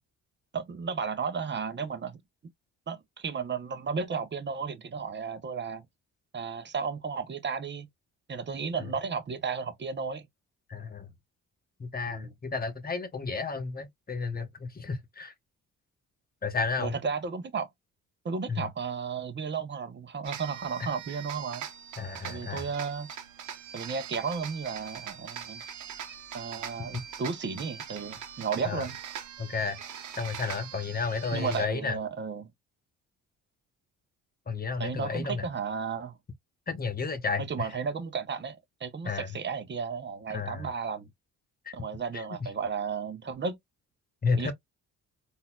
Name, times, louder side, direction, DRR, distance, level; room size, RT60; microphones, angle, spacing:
voice 1, 0.5-2.2 2.9-5.8 6.3-7.9 8.3-10.3 12.1-12.3 16.8-17.7 18.2-21.6 22.2-23.1 23.7-25.6 26.3-29.0 31.3-32.5 34.8-36.2 37.4-41.1 41.7-43.6 44.4-44.5, right 5 dB, 35° right, 0.9 m, -33 dB
voice 2, 10.7-11.1 11.8-15.3 16.4-16.9 18.5-18.6 22.0-22.7 28.6-28.9 29.4-29.8 30.2-32.0 34.5-35.5 36.7-37.7 39.0-39.3 40.3-40.7 41.7-41.8 42.1-42.5 44.2-44.5, left 4 dB, 30° left, 1.1 m, -32 dB
sound 1, 20.2-31.7, right 8 dB, 75° right, 1.0 m, -42 dB
3.9 x 2.7 x 2.3 m
cardioid pair, 90°, 30 cm